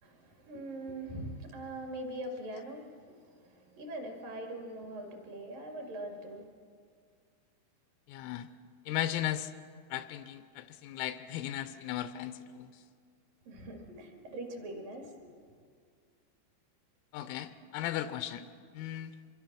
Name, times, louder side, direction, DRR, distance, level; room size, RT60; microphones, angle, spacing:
voice 1, 0.0-6.4 13.4-15.4, right 1 dB, 50° right, 1 dB, 3.4 m, -42 dB
voice 2, 8.1-8.5 8.9-9.5 9.9-12.7 17.1-18.4 18.7-19.1, left 12 dB, 85° left, 10 dB, 3.4 m, -36 dB
25.0 x 22.5 x 6.1 m, 2.1 s
omnidirectional pair, 5.9 m